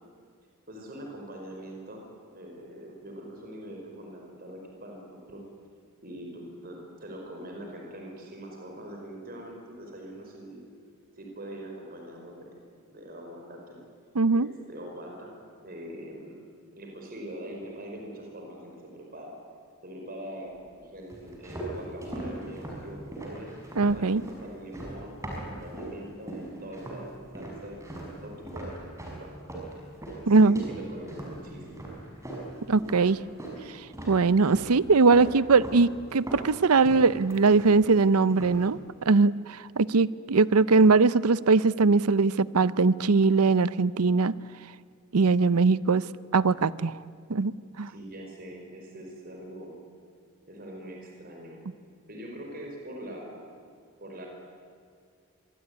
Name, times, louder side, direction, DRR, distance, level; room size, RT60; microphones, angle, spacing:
voice 1, 0.7-2.0 2.3-5.4 6.0-10.6 11.2-12.5 12.9-13.8 14.3-15.3 15.6-19.4 19.8-23.5 23.9-28.9 29.2-29.3 30.2-31.8 47.9-49.7 50.5-51.6 52.1-53.4 54.0-54.3, right 1 dB, 40° right, 0 dB, 5.1 m, -43 dB
voice 2, 14.2-14.5 23.8-24.2 30.3-30.6 32.7-33.2 34.1-38.8 39.1-44.3 45.1-46.0 46.3-47.0 47.3-47.9, right 4 dB, 85° right, 18 dB, 0.7 m, -21 dB
sound 1, 21.1-26.0 26.3-27.1 27.4-33.6 33.9-34.7 35.1-35.8 36.1-38.0 38.3-38.7, right 1 dB, 15° right, 5.8 m, -39 dB
26.0 x 23.0 x 9.7 m, 2.2 s
head